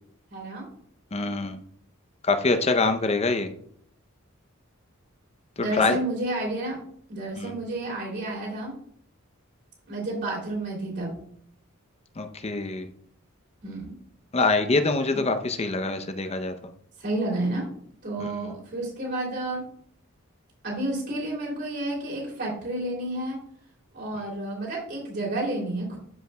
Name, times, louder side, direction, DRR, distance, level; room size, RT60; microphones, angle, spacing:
voice 1, 0.3-0.7 5.6-6.8 7.1-8.7 9.9-11.1 13.6-13.9 17.0-17.7 18.0-19.6 20.6-23.4 23.9-26.0, right 1 dB, 50° right, -3 dB, 2.8 m, -30 dB
voice 2, 1.1-1.6 2.2-3.5 5.6-6.0 7.4-7.6 12.2-12.9 14.3-16.5 18.2-18.6, left 3 dB, 30° left, 8 dB, 0.6 m, -25 dB
13.0 x 5.1 x 2.2 m, 0.63 s
head